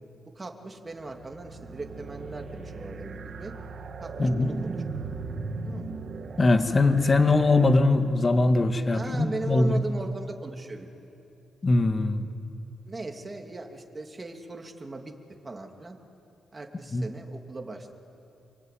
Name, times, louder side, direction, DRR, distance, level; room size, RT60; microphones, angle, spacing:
voice 1, 0.3-3.5 4.0-4.8 5.6-5.9 8.9-10.9 12.8-15.1 15.4-16.0 16.5-17.9, right 3 dB, 30° right, 3 dB, 3.0 m, -38 dB
sound 1, 0.9-8.4, right 4 dB, 60° right, 1.8 m, -38 dB
voice 2, 4.2-4.5 6.4-9.8 11.6-12.3 16.9-17.0, left 2 dB, 35° left, 7 dB, 2.4 m, -21 dB
26.0 x 24.5 x 9.4 m, 2.8 s
cardioid pair, 70°, 0 cm